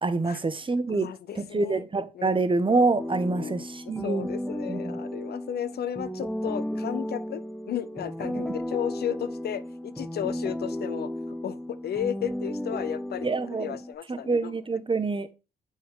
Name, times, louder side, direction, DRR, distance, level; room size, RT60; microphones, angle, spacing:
voice 1, 0.0-4.3 4.7-5.0 13.2-13.8 14.1-15.3, right 3 dB, 30° right, 1.0 m, -26 dB
voice 2, 0.9-1.8 2.1-2.4 3.3-3.7 4.0-11.1 11.4-14.6, left 9 dB, 60° left, 0.6 m, -34 dB
sound 1, 3.0-13.9, left 1 dB, ahead, 0.6 m, -34 dB
7.1 x 4.7 x 3.6 m
supercardioid pair, 50°, 18 cm